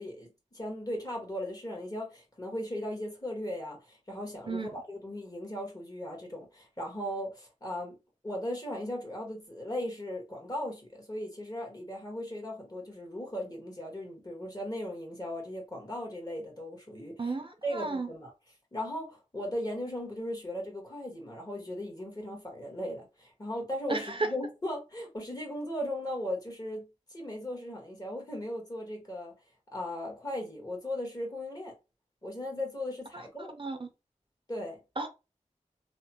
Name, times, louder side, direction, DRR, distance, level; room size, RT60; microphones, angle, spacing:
voice 1, 0.0-8.0 8.2-17.3 17.6-18.3 18.7-29.3 29.7-31.7 32.2-33.5 34.5-34.8, left 1 dB, 30° left, 1.4 m, -37 dB
voice 2, 17.2-18.1 23.9-24.3 33.1-33.9 35.0-35.1, right 3 dB, 40° right, 0.5 m, -34 dB
3.0 x 2.0 x 2.9 m
wide cardioid pair, 50°, 13 cm